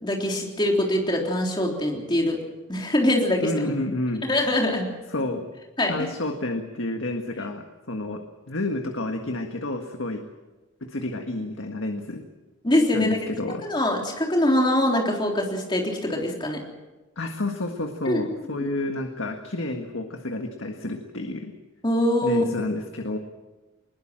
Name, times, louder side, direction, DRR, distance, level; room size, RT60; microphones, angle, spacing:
voice 1, 0.0-2.4 2.7-3.5 4.3-4.9 5.8-6.0 12.6-13.2 13.6-16.6 18.1-18.7 21.8-22.5, left 1 dB, 25° left, 0 dB, 3.6 m, -23 dB
voice 2, 3.4-4.2 5.1-5.5 5.9-10.2 10.8-12.2 12.9-13.7 17.2-21.5 22.2-23.2, left 2 dB, 85° left, 4 dB, 1.7 m, -30 dB
21.0 x 21.0 x 7.6 m, 1.1 s
head